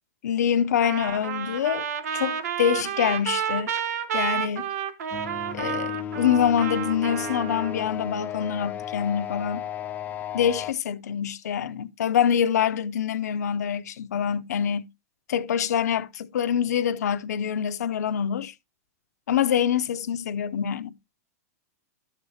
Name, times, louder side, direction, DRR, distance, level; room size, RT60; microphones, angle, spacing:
voice 1, 0.2-1.9 2.1-3.7 4.1-4.7 5.5-9.6 10.3-14.9 15.3-18.5 19.3-20.9, left 8 dB, 85° left, 0.7 m, -25 dB
Trumpet, 0.8-7.8, right 8 dB, 75° right, 1.1 m, -30 dB
sound 1, 5.1-10.7, left 9 dB, 20° left, 0.6 m, -34 dB
12.0 x 6.6 x 2.8 m
hypercardioid pair, 140°, 9 cm